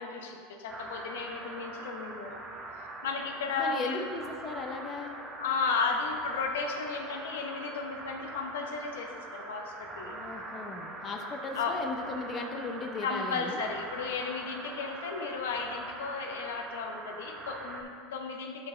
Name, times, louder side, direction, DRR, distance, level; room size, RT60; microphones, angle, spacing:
voice 1, 0.0-2.4 3.0-4.0 5.3-10.2 11.5-11.8 13.0-18.7, left 4 dB, 85° left, 3 dB, 0.9 m, -34 dB
sound 1, 0.7-17.8, right 2 dB, 25° right, 1.0 m, -43 dB
voice 2, 3.6-5.2 10.1-13.6, left 3 dB, 35° left, 4 dB, 0.8 m, -37 dB
12.0 x 4.8 x 3.3 m, 2.2 s
supercardioid pair, 125°, 0 cm